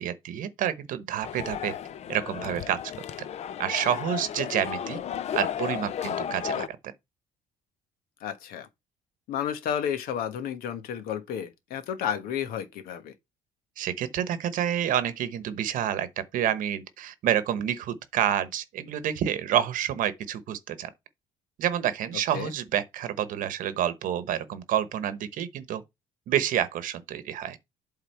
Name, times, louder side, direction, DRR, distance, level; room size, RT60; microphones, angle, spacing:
voice 1, 0.0-1.7 2.1-2.8 3.6-5.0 5.3-6.7 13.8-16.1 16.3-20.9 21.6-25.8 26.3-27.6, right 10 dB, 60° right, 1.0 m, -28 dB
sound 1, 1.2-6.7, left 9 dB, 45° left, 0.6 m, -33 dB
voice 2, 8.2-8.7 9.3-13.1 22.3-22.5, left 9 dB, 75° left, 1.3 m, -32 dB
8.0 x 3.6 x 4.5 m
cardioid pair, 135°, 15 cm